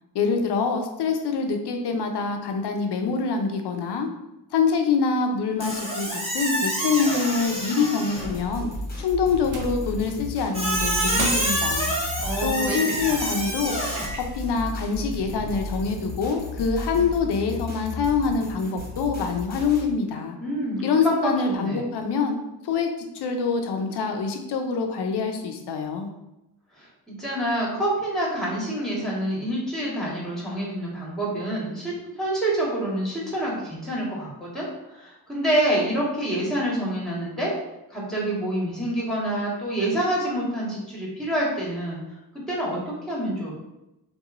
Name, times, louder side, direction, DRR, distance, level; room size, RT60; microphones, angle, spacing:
voice 1, 0.1-4.1 4.5-8.7 9.0-11.9 12.4-13.8 14.3-20.4 20.8-22.4 22.6-22.9 23.1-26.1, left 5 dB, 70° left, 4 dB, 0.5 m, -25 dB
Squeak, 5.6-8.4 10.5-14.1, right 1 dB, 15° right, 1.0 m, -27 dB
sound 1, 8.2-19.9, left 1 dB, 20° left, 1.0 m, -34 dB
sound 2, 9.4-9.8 10.1-10.3 10.9-11.7 12.7-13.1 13.6-13.7 14.0-14.4, right 3 dB, 50° right, 0.6 m, -35 dB
voice 2, 12.2-13.2 20.4-21.8 26.7-37.5 37.9-42.0 42.3-43.5, right 1 dB, ahead, -5 dB, 1.2 m, -27 dB
2.9 x 2.3 x 2.4 m, 0.93 s
cardioid pair, 50°, 42 cm